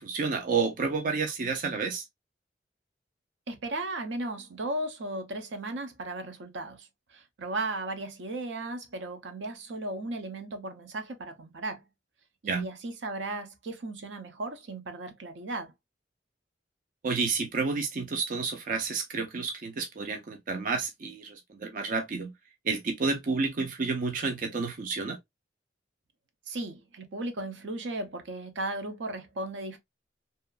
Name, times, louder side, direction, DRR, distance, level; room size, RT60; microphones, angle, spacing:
voice 1, 0.0-2.0 12.5-12.7 17.0-22.3 22.6-25.2, right 4 dB, 45° right, 0.4 m, -30 dB
voice 2, 3.5-11.8 12.4-15.7 26.5-29.8, right 2 dB, 85° right, 0.6 m, -36 dB
2.7 x 2.4 x 2.3 m
head